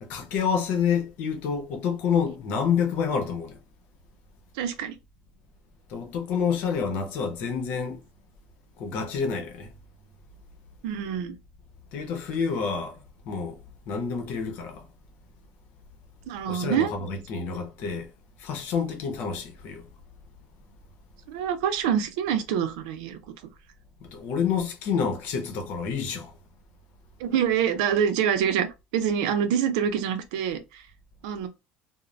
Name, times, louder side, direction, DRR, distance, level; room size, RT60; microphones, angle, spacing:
voice 1, 0.0-3.6 5.9-8.0 8.8-9.7 11.9-13.0 13.2-13.6 13.9-14.9 16.5-18.1 18.4-19.9 24.0-26.3, left 6 dB, 65° left, 0.8 m, -28 dB
voice 2, 4.5-5.0 10.8-11.3 16.3-16.9 21.3-23.2 27.2-28.7 28.9-30.8 31.2-31.5, right 8 dB, 85° right, 0.5 m, -26 dB
2.5 x 2.1 x 3.1 m
supercardioid pair, 115°, 4 cm